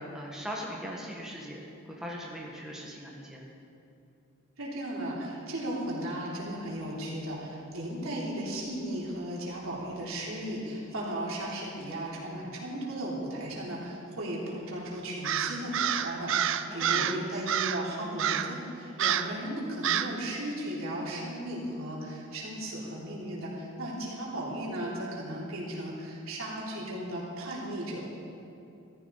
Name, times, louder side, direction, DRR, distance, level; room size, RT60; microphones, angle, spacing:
voice 1, 0.0-3.4 16.7-17.4, equal, 5° right, -4 dB, 1.5 m, -40 dB
voice 2, 4.6-28.0, right 1 dB, 80° right, -5 dB, 3.3 m, -36 dB
Crow, 15.2-17.2 17.5-17.9 18.2-18.6 19.0-19.4 19.8-20.2, right 9 dB, 65° right, 0.5 m, -28 dB
15.0 x 13.5 x 4.0 m, 2.7 s
head